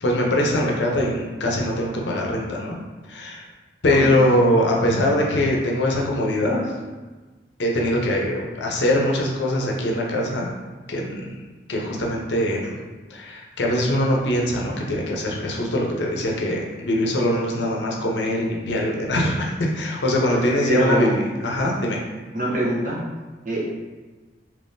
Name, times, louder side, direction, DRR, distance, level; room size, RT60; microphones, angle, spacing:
voice 1, 0.0-2.7 3.1-3.4 3.8-6.7 7.6-10.5 10.9-11.3 11.7-12.8 13.1-22.0, left 1 dB, 75° left, -1 dB, 0.6 m, -22 dB
voice 2, 20.7-21.2 22.3-23.0 23.4-23.7, right 2 dB, 45° right, -4 dB, 0.8 m, -23 dB
3.5 x 3.0 x 2.6 m, 1.3 s
head